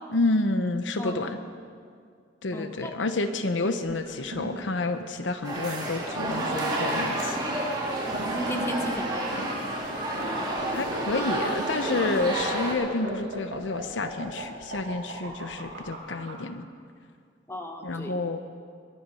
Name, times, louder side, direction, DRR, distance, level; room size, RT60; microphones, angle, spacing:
voice 1, 0.1-1.4 2.4-7.4 10.7-16.6 17.8-18.4, left 2 dB, 80° left, 9 dB, 0.8 m, -29 dB
voice 2, 2.5-2.9 8.3-9.5 17.5-18.1, equal, 15° left, 3 dB, 1.3 m, -35 dB
sound 1, 3.9-16.3, right 1 dB, 65° right, 4.5 m, -38 dB
sound 2, 5.4-12.7, right 1 dB, 25° right, 3.0 m, -30 dB
21.5 x 11.0 x 5.6 m, 2.2 s
head